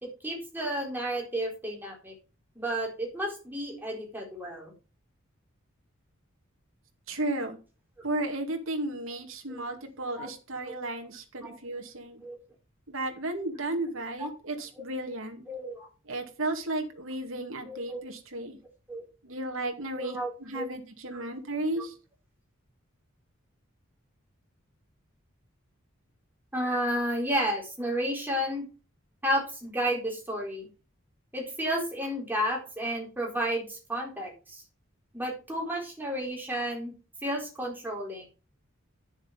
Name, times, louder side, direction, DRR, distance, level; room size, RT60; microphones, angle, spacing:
voice 1, 0.0-2.1 2.6-4.7 9.5-9.7 10.1-10.3 10.7-10.8 11.4-11.6 12.2-12.4 14.2-14.3 15.5-15.9 17.6-18.0 18.9-19.0 19.9-20.7 21.1-21.2 21.8-21.9 26.5-28.7 29.2-30.7 31.3-34.6 35.1-36.9 37.2-38.2, equal, 10° right, -1 dB, 4.2 m, -32 dB
voice 2, 7.1-7.6 8.0-12.2 12.9-15.4 16.1-18.6 19.2-21.9, right 2 dB, 75° right, 3 dB, 2.4 m, -34 dB
10.0 x 7.0 x 5.2 m, 0.33 s
head